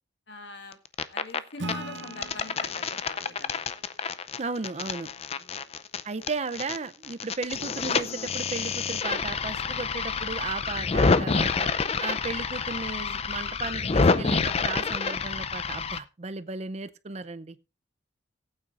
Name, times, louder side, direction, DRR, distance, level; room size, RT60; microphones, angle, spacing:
voice 1, 0.3-0.8 1.1-3.6 5.4-5.7 11.3-11.6, left 3 dB, 70° left, 1.7 m, -43 dB
sound 1, 0.7-1.4 1.7-6.8 7.0-16.0, left 4 dB, 35° left, 0.5 m, -28 dB
Acoustic guitar / Strum, 1.6-5.0, right 2 dB, 80° right, 0.9 m, -42 dB
voice 2, 4.4-5.1 6.0-11.7 12.0-17.6, right 4 dB, 35° right, 0.6 m, -35 dB
19.5 x 8.8 x 2.5 m
head